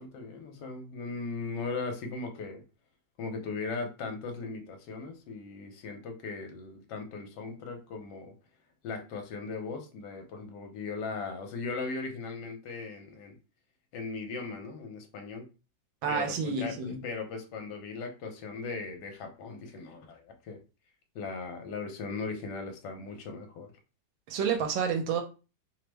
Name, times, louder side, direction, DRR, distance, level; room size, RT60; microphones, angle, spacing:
voice 1, 0.0-2.6 3.2-8.3 8.8-13.4 13.9-15.5 16.1-20.6 21.1-23.7, left 4 dB, 75° left, 1.3 m, -38 dB
voice 2, 16.0-17.0 24.3-25.2, right 6 dB, 85° right, 1.3 m, -29 dB
3.2 x 2.0 x 3.2 m
omnidirectional pair, 2.1 m